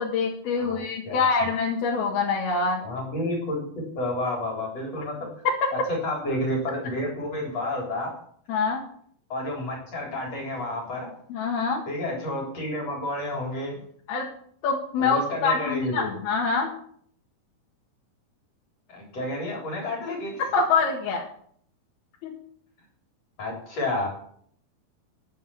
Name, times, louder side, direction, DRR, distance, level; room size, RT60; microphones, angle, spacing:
voice 1, 0.0-2.8 5.6-5.7 8.5-8.8 11.3-11.8 14.1-14.3 14.6-16.7 20.4-21.3 22.2-22.3, left 4 dB, 75° left, -4 dB, 3.7 m, -25 dB
voice 2, 0.6-1.5 2.8-5.3 5.7-8.1 9.3-11.1 11.9-13.8 15.0-16.2 18.9-20.4 23.4-24.1, left 1 dB, 40° left, -1 dB, 4.6 m, -30 dB
11.0 x 10.0 x 7.0 m, 0.63 s
omnidirectional pair, 4.5 m